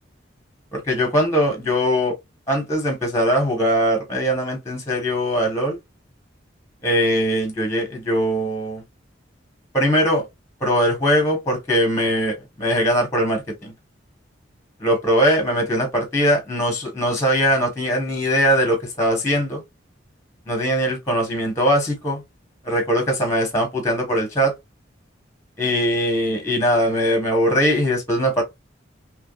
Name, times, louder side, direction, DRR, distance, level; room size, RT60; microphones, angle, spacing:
voice 1, 0.7-2.1 2.5-5.8 6.8-8.8 9.7-10.2 10.6-13.7 14.8-19.6 20.5-22.2 22.6-24.5 25.6-28.4, equal, 15° left, 1.1 m, -21 dB
3.5 x 3.0 x 2.3 m
head